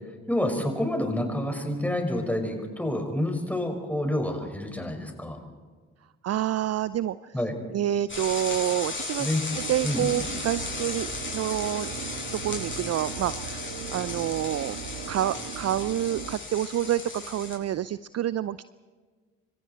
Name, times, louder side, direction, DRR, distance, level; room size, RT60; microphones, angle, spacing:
voice 1, 0.3-5.4 7.3-7.5 9.2-9.4 9.8-10.1, left 1 dB, 5° left, 4 dB, 5.8 m, -28 dB
voice 2, 6.2-7.3 7.7-9.3 9.7-11.1 11.3-14.8 15.1-18.6, right 12 dB, 40° right, 17 dB, 0.6 m, -28 dB
sound 1, 8.1-17.6, left 4 dB, 30° left, 7.2 m, -35 dB
sound 2, 9.5-16.4, right 8 dB, 55° right, 1.6 m, -39 dB
27.0 x 25.0 x 4.5 m, 1.5 s
hypercardioid pair, 45°, 38 cm